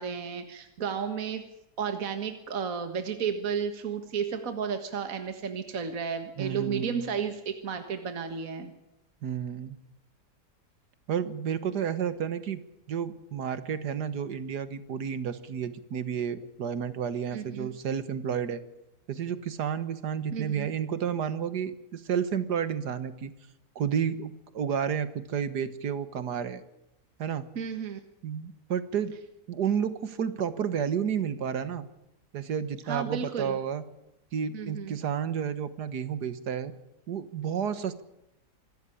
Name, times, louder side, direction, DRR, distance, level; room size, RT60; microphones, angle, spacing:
voice 1, 0.0-1.4 1.8-8.7 17.3-17.7 20.3-20.7 27.6-28.0 32.9-33.6 34.5-35.0, right 6 dB, 55° right, 7 dB, 1.9 m, -33 dB
voice 2, 6.4-7.0 9.2-9.8 11.1-12.6 12.9-18.6 19.1-23.3 23.8-26.6 27.2-27.5 28.2-29.1 29.5-31.8 32.3-33.8 34.3-36.7 37.1-38.0, right 8 dB, 75° right, 13 dB, 1.9 m, -31 dB
25.5 x 13.5 x 10.0 m, 0.86 s
omnidirectional pair, 1.8 m